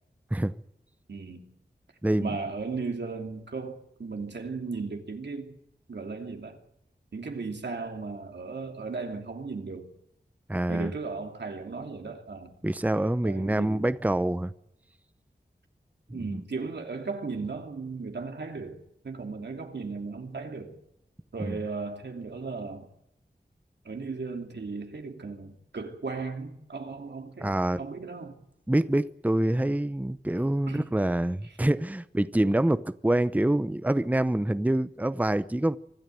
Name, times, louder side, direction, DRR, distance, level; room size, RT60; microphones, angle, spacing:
voice 1, 1.1-1.4 2.2-5.6 5.9-6.6 7.1-9.9 10.7-12.5 13.2-13.9 16.1-18.8 19.0-20.8 21.3-22.9 23.8-28.4 30.7-30.9 31.4-31.5, right 4 dB, 85° right, 2.8 m, -36 dB
voice 2, 2.0-2.3 10.5-10.9 12.6-14.5 16.3-16.4 21.4-21.6 27.4-27.8 28.7-35.8, right 1 dB, 10° right, 0.7 m, -26 dB
24.5 x 12.5 x 9.2 m
wide cardioid pair, 70°, 17 cm